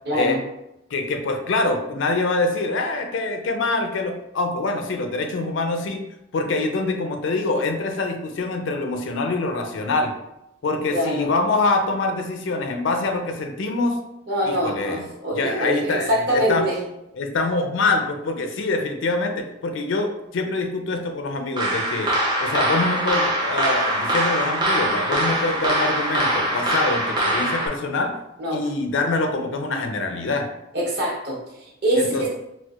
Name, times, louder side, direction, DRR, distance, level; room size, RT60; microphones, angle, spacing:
voice 1, 0.1-0.4 10.9-11.3 14.3-16.8 28.4-28.6 30.7-32.3, right 1 dB, 55° right, -5 dB, 1.0 m, -24 dB
voice 2, 0.9-6.0 6.3-10.1 10.6-14.0 14.5-15.1 15.3-16.7 17.2-22.1 22.4-28.1 28.5-30.5 32.0-32.3, left 3 dB, 70° left, 5 dB, 0.4 m, -25 dB
sound 1, 21.6-27.7, right 1 dB, 20° right, 0.5 m, -22 dB
4.3 x 2.1 x 2.3 m, 0.86 s
head